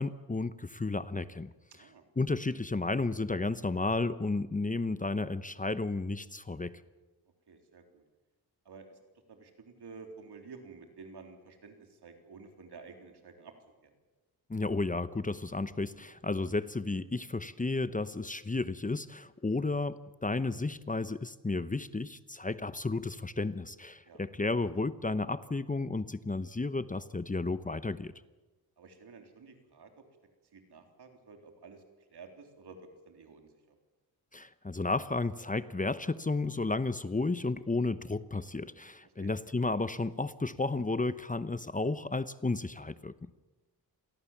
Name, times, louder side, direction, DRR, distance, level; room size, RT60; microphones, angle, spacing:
voice 1, 0.0-1.5 2.2-6.8 14.5-28.1 34.3-43.1, left 3 dB, 20° left, 14 dB, 0.9 m, -32 dB
voice 2, 1.7-2.1 7.5-8.0 8.7-9.0 9.3-13.5 13.8-13.9 19.5-19.7 24.0-24.2 28.8-30.0 30.5-33.8 39.0-39.3, right 4 dB, 80° right, 5 dB, 3.7 m, -52 dB
27.0 x 18.5 x 7.3 m, 1.2 s
cardioid pair, 75°, 39 cm